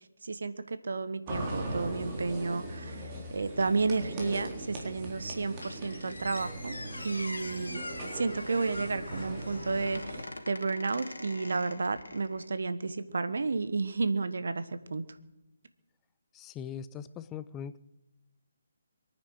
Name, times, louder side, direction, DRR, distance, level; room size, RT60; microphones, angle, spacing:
voice 1, 0.2-6.8 7.0-7.8 8.1-15.0, right 4 dB, 65° right, 12 dB, 1.3 m, -32 dB
sound 1, 1.3-10.2, right 1 dB, 25° right, 3.8 m, -40 dB
Squeak, 5.6-12.5, left 2 dB, 75° left, 2.4 m, -43 dB
voice 2, 16.3-17.8, left 8 dB, 15° left, 15 dB, 0.6 m, -40 dB
23.0 x 9.6 x 6.5 m, 0.99 s
figure-of-eight pair, 145°, 0 cm